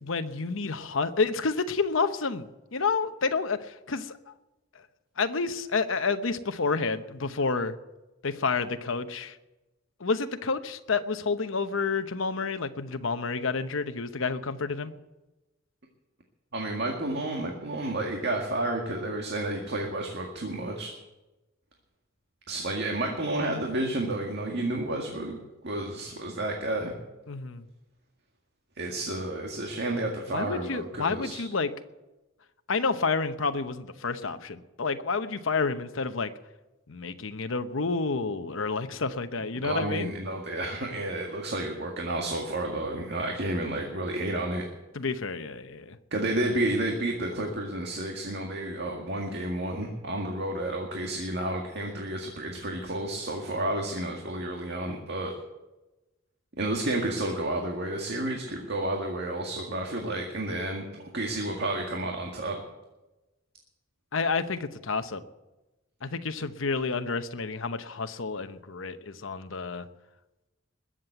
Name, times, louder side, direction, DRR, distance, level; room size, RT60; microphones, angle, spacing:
voice 1, 0.0-4.1 5.2-7.7 8.2-9.3 10.0-14.9 27.3-27.6 30.3-31.7 32.7-36.3 36.9-40.1 44.9-46.0 64.1-65.2 66.0-69.9, left 4 dB, 70° left, 9 dB, 0.9 m, -29 dB
voice 2, 16.5-20.9 22.5-25.4 25.6-27.0 28.8-31.4 39.6-44.6 46.1-55.3 56.6-62.6, right 1 dB, 55° right, 1 dB, 1.9 m, -31 dB
21.0 x 7.6 x 8.1 m, 1.0 s
head